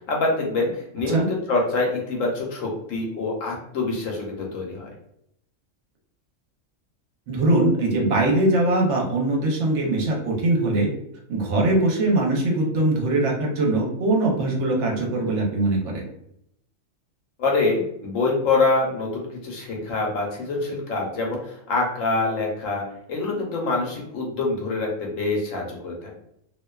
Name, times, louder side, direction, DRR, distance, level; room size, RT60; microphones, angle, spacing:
voice 1, 0.1-4.9 17.4-21.4 21.7-22.8 23.1-26.1, left 3 dB, 80° left, -1 dB, 1.1 m, -25 dB
voice 2, 7.3-10.9 11.3-16.0, right 2 dB, 70° right, -1 dB, 0.9 m, -21 dB
2.5 x 2.2 x 2.2 m, 0.76 s
omnidirectional pair, 1.4 m